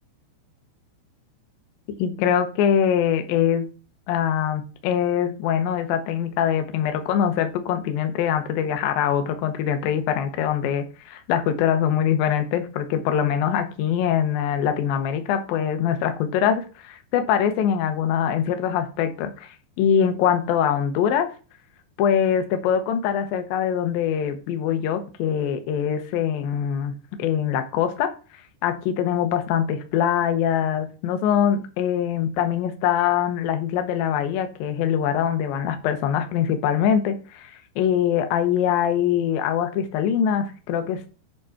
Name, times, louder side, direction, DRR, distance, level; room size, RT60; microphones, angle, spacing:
voice 1, 2.0-3.7 4.1-19.5 19.8-21.3 22.0-26.9 27.2-28.1 28.6-41.1, left 9 dB, 75° left, 7 dB, 2.3 m, -23 dB
9.0 x 3.8 x 5.9 m, 0.37 s
omnidirectional pair, 5.1 m